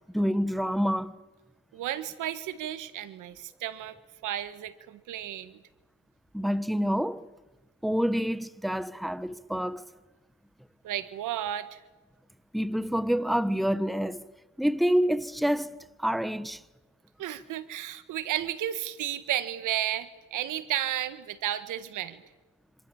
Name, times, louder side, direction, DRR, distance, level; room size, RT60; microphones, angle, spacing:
voice 1, 0.1-1.2 6.3-7.3 7.8-9.8 12.5-14.2 14.6-16.6, equal, ahead, 1.2 m, -27 dB
voice 2, 1.7-4.0 4.2-5.6 10.8-11.8 17.2-22.2, right 12 dB, 85° right, 1.7 m, -33 dB
27.0 x 26.5 x 7.2 m
cardioid pair, 90°, 30 cm